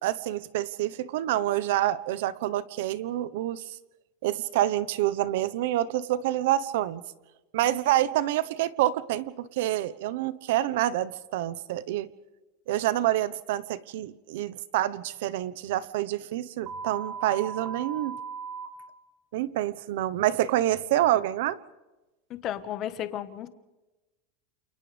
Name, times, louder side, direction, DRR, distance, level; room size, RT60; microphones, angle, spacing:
voice 1, 0.0-3.8 4.2-7.0 7.5-12.1 12.7-18.2 19.3-21.6, right 13 dB, 70° right, 16 dB, 1.1 m, -27 dB
sound 1, 16.7-18.7, right 6 dB, 25° right, 2.3 m, -37 dB
voice 2, 22.3-23.5, left 11 dB, 35° left, 11 dB, 1.4 m, -33 dB
29.5 x 28.5 x 3.5 m, 1.1 s
supercardioid pair, 160°, 0 cm